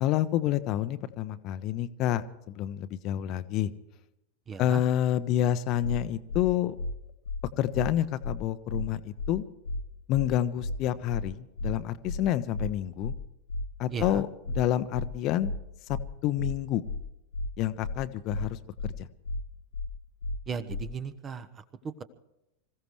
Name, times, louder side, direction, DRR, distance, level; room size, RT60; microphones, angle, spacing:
voice 1, 0.0-3.7 4.6-6.8 7.6-9.5 10.1-13.1 13.8-14.3 14.5-15.5 15.9-16.8 17.6-18.6 19.0-19.1, left 12 dB, 40° left, 12 dB, 0.8 m, -28 dB
voice 2, 4.5-4.8 13.9-14.2 20.5-21.5, right 6 dB, 25° right, 13 dB, 1.0 m, -36 dB
sound 1, 6.3-6.4 6.8-6.9 7.2-7.4 7.7-7.9 8.2-8.4 8.7-8.8 9.2-9.3 9.6-9.8 10.1-10.3 10.6-10.8 11.1-11.2 11.6-11.7 12.0-12.2 12.5-12.7 13.0-13.2 13.5-13.6 14.0-14.1 14.4-14.6 14.9-15.1 15.4-15.6 15.9-16.0 16.4-16.5 16.8-17.0 17.3-17.5 17.8-18.0 18.3-18.4 18.8-18.9 19.2-19.4 19.7-19.9 20.2-20.4 20.7-20.8, left 2 dB, 70° left, 0.8 m, -33 dB
26.0 x 15.5 x 3.2 m, 0.89 s
figure-of-eight pair, 90°, 0 cm